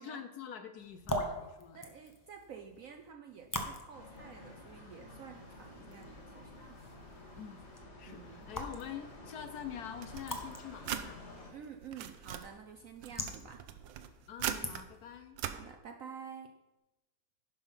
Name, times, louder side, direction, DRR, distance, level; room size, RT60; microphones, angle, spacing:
voice 1, 0.0-1.8 7.4-7.6 8.0-11.2 14.3-15.4, left 8 dB, 65° left, 8 dB, 1.1 m, -45 dB
sound 1, 0.8-15.2, left 1 dB, 20° left, 0.6 m, -45 dB
voice 2, 1.7-6.7 8.1-8.5 11.5-13.6 15.5-16.5, right 7 dB, 65° right, 4 dB, 0.8 m, -50 dB
sound 2, 3.9-11.5, left 2 dB, 40° left, 2.2 m, -51 dB
sound 3, 10.0-11.1 11.7-12.5 13.0-14.8 15.3-15.6, right 10 dB, 85° right, 1.4 m, -40 dB
11.0 x 5.5 x 5.6 m, 1.0 s
omnidirectional pair, 2.0 m